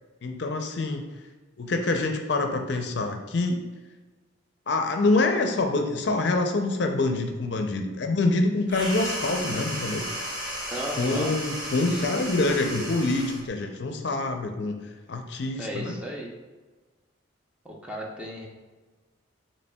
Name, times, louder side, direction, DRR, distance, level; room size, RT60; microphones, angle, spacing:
voice 1, 0.2-1.1 1.6-3.6 4.7-10.1 11.0-14.8 15.1-15.9, left 2 dB, 55° left, 4 dB, 0.4 m, -26 dB
sound 1, 8.7-13.5, equal, 45° right, 1.0 m, -34 dB
voice 2, 10.7-11.3 11.9-12.1 15.6-16.3 17.6-18.5, right 1 dB, 5° right, -2 dB, 0.5 m, -35 dB
6.9 x 3.1 x 2.2 m, 1.3 s
head